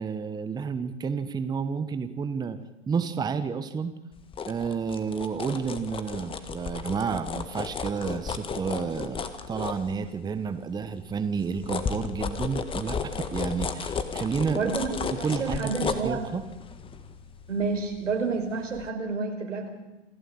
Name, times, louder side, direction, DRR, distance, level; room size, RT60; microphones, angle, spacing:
voice 1, 0.0-2.6 2.9-3.9 4.5-14.7 15.2-16.4, right 5 dB, 10° right, 10 dB, 1.1 m, -30 dB
sound 1, 4.1-10.4 10.8-18.4 18.7-18.9, left 5 dB, 15° left, 1.6 m, -34 dB
voice 2, 14.5-16.2 17.5-19.7, right 4 dB, 85° right, 4 dB, 5.0 m, -29 dB
27.5 x 12.5 x 8.8 m, 1.0 s
hypercardioid pair, 125°, 36 cm